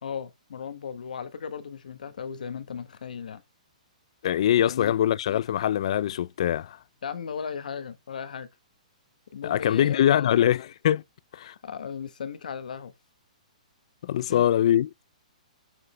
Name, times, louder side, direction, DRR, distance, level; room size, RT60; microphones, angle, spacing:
voice 1, 0.0-3.4 4.6-5.0 7.0-8.5 9.3-10.5 11.6-12.9 14.2-14.4, left 7 dB, 75° left, 1.1 m, -36 dB
voice 2, 4.2-6.8 9.4-11.0 11.3-11.5 14.0-14.9, left 11 dB, 45° left, 0.3 m, -23 dB
6.1 x 5.1 x 3.1 m
hypercardioid pair, 170°, 4 cm